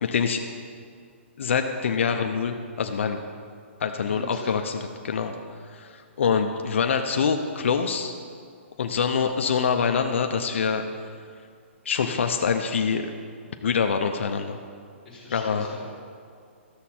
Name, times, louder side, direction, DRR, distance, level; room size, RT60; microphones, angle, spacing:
voice 1, 0.0-0.4 1.4-3.2 3.8-4.8 5.0-5.3 5.7-8.1 8.8-10.8 11.9-13.1 13.6-14.6 15.3-15.7, left 6 dB, 70° left, 5 dB, 0.6 m, -25 dB
voice 2, 4.1-4.6 15.0-15.8, left 1 dB, 5° left, -10 dB, 2.7 m, -41 dB
13.0 x 7.2 x 4.3 m, 2.3 s
hypercardioid pair, 165°, 7 cm